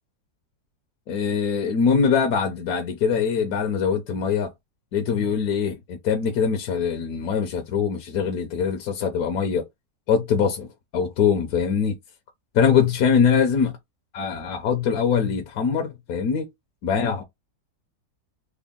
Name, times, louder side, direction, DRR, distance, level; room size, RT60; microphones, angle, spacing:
voice 1, 1.1-4.5 4.9-9.7 10.1-12.0 12.5-13.7 14.1-16.5 16.8-17.2, left 6 dB, 70° left, 1.0 m, -23 dB
3.5 x 2.1 x 3.6 m
omnidirectional pair, 1.8 m